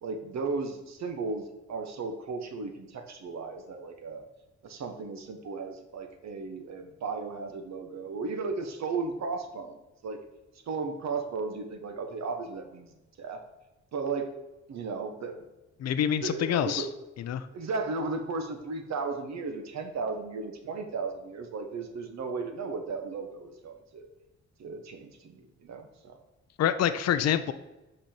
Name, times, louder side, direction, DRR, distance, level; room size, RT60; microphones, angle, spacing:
voice 1, 0.0-4.2 4.6-10.2 10.7-13.4 13.9-14.3 14.7-15.4 16.2-16.9 17.5-24.1 24.6-26.2, right 4 dB, 65° right, 5 dB, 1.1 m, -35 dB
voice 2, 15.8-16.8 17.2-17.5 26.6-27.5, left 9 dB, 60° left, 11 dB, 0.5 m, -26 dB
5.4 x 5.2 x 4.4 m, 1.0 s
supercardioid pair, 50°, 29 cm